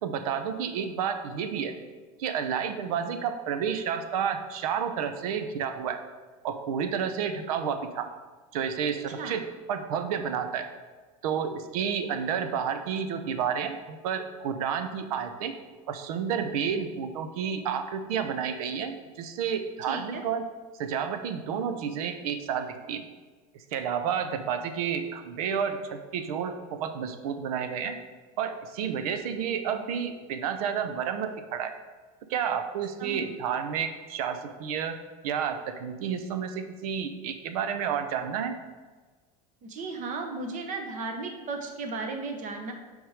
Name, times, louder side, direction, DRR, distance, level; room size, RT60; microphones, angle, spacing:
voice 1, 0.0-1.7 2.2-6.0 6.4-8.1 8.5-10.7 11.2-15.5 15.9-20.5 20.8-23.0 23.7-28.0 28.4-31.7 32.3-35.0 35.2-38.5, right 7 dB, 75° right, 8 dB, 0.7 m, -30 dB
voice 2, 19.9-20.2 33.0-33.2 39.6-42.7, right 3 dB, 40° right, 4 dB, 1.1 m, -35 dB
6.0 x 3.7 x 4.9 m, 1.3 s
supercardioid pair, 105°, 19 cm